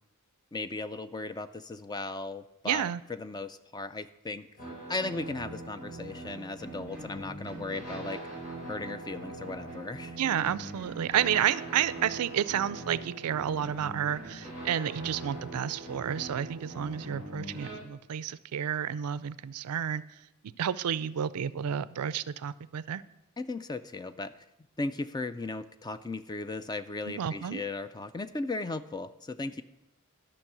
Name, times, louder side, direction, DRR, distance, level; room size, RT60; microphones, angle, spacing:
voice 1, 0.5-4.5 4.9-8.2 8.7-10.2 23.4-24.3 24.8-29.6, left 3 dB, 20° left, 11 dB, 0.4 m, -36 dB
voice 2, 2.7-3.0 10.2-20.0 20.6-23.0 27.0-27.6, right 9 dB, 90° right, 17 dB, 0.4 m, -31 dB
sound 1, 4.6-17.8, right 2 dB, 35° left, 4.5 m, -42 dB
11.5 x 6.3 x 6.0 m, 0.89 s
head